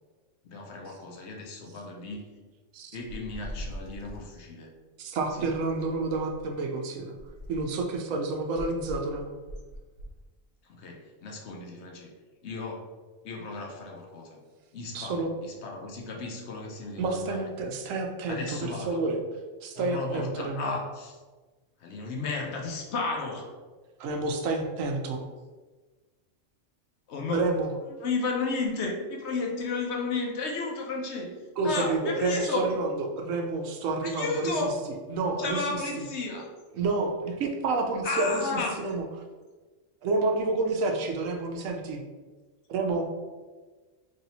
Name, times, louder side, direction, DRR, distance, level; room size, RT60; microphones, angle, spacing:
voice 1, 0.4-2.3 2.9-4.7 5.3-5.5 10.6-12.1 12.4-12.9 13.2-14.4 14.7-17.5 18.3-19.0 19.7-21.2 21.8-23.5 27.1-27.5 27.9-31.3 31.6-32.7 34.0-34.7 35.4-36.5 38.0-38.7, left 3 dB, 65° left, 0 dB, 0.9 m, -33 dB
sound 1, 3.1-4.3 5.2-6.5 7.1-7.8 8.6-10.2, equal, 60° right, 0.7 m, -42 dB
voice 2, 5.0-7.1 7.5-9.3 14.9-15.3 17.0-19.2 19.6-20.7 24.0-25.2 27.3-27.7 31.6-32.9 33.1-34.5 35.1-35.6 36.8-39.0 40.0-42.0 42.7-43.1, right 3 dB, 85° right, 3 dB, 1.0 m, -29 dB
3.2 x 2.7 x 4.0 m, 1.3 s
omnidirectional pair, 1.3 m